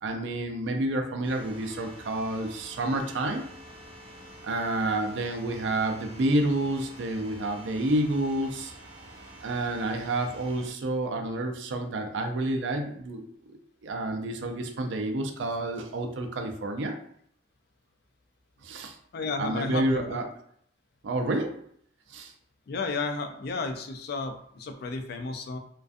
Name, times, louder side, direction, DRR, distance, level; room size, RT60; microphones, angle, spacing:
voice 1, 0.0-3.4 4.4-8.7 9.4-17.0 18.6-19.0 19.4-20.2 21.0-21.6 22.1-22.3, right 2 dB, 85° right, 4 dB, 0.4 m, -29 dB
sound 1, 1.2-10.7, right 1 dB, 30° right, 0.5 m, -48 dB
voice 2, 19.1-20.2 22.7-25.6, left 3 dB, 60° left, 6 dB, 0.3 m, -33 dB
2.4 x 2.2 x 2.4 m, 0.66 s
head